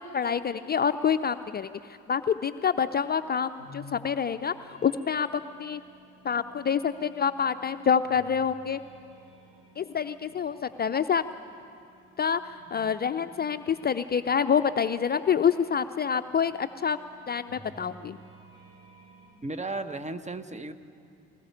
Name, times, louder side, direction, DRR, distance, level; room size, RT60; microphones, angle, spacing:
voice 1, 0.0-1.7 2.1-5.8 6.2-8.8 9.8-11.2 12.2-12.4 12.7-17.0 17.3-18.2, left 7 dB, 30° left, 11 dB, 0.6 m, -27 dB
sound 1, 2.7-19.3, equal, 75° right, 6.6 m, -54 dB
voice 2, 19.4-20.7, right 2 dB, 20° right, 11 dB, 1.2 m, -34 dB
20.5 x 19.5 x 8.5 m, 2.5 s
figure-of-eight pair, 40°, 33 cm